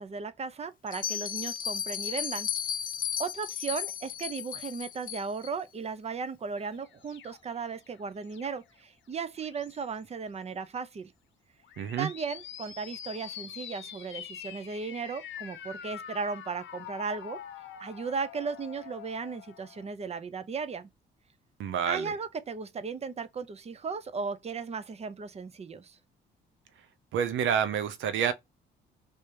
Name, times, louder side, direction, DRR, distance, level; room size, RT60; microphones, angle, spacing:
voice 1, 0.0-2.5 3.2-11.1 12.0-17.4 17.8-20.9 21.9-26.0, right 5 dB, 30° right, 0.6 m, -36 dB
Bell, 0.9-5.5, left 9 dB, 45° left, 0.5 m, -34 dB
sound 1, 6.6-8.8 9.3-10.0 11.6-19.9, left 9 dB, 70° left, 0.8 m, -45 dB
voice 2, 11.8-12.1 21.6-22.1 27.1-28.3, right 8 dB, 75° right, 0.7 m, -28 dB
3.4 x 2.7 x 3.2 m
cardioid pair, 90°, 20 cm